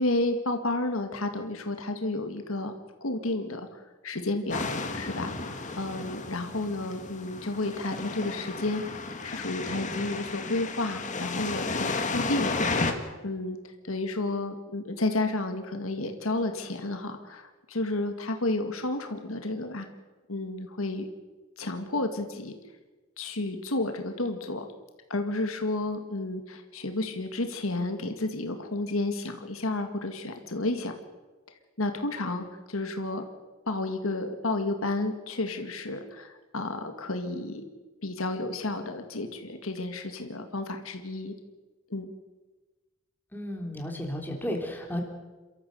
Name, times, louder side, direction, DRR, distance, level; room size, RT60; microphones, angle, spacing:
voice 1, 0.0-2.7 3.0-8.8 9.2-13.6 13.8-19.9 20.3-21.1 21.6-22.5 23.2-24.7 25.1-30.9 31.8-33.2 33.7-37.6 38.0-41.3 41.9-42.1, left 2 dB, 75° left, 6 dB, 2.1 m, -31 dB
sound 1, 4.5-12.9, left 3 dB, 35° left, 2.0 m, -33 dB
voice 2, 43.3-45.0, equal, 10° left, 1 dB, 3.5 m, -33 dB
28.5 x 13.5 x 8.0 m, 1.2 s
head